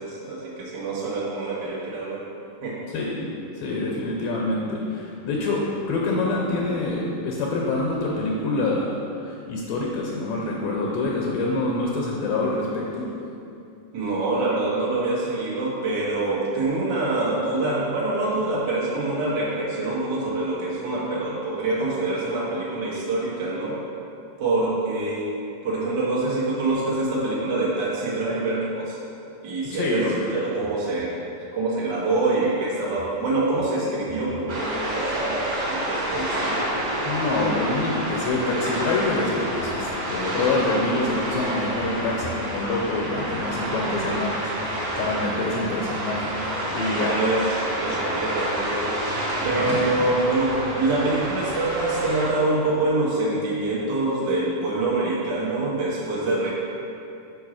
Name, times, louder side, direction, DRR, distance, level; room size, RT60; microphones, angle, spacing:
voice 1, 0.0-2.2 2.6-2.8 13.9-23.8 24.4-25.3 25.6-29.0 29.4-31.2 31.5-36.7 43.7-44.0 47.0-48.9 49.4-56.5, right 2 dB, 65° right, -6 dB, 1.1 m, -25 dB
voice 2, 2.9-8.9 9.2-13.1 29.7-30.5 36.1-36.3 37.0-44.3 44.6-46.4 46.7-47.2 49.4-49.8, left 2 dB, 80° left, -3 dB, 2.3 m, -26 dB
sound 1, 34.5-52.3, right 1 dB, 40° right, 1.6 m, -28 dB
5.4 x 4.7 x 6.3 m, 2.6 s
omnidirectional pair, 4.3 m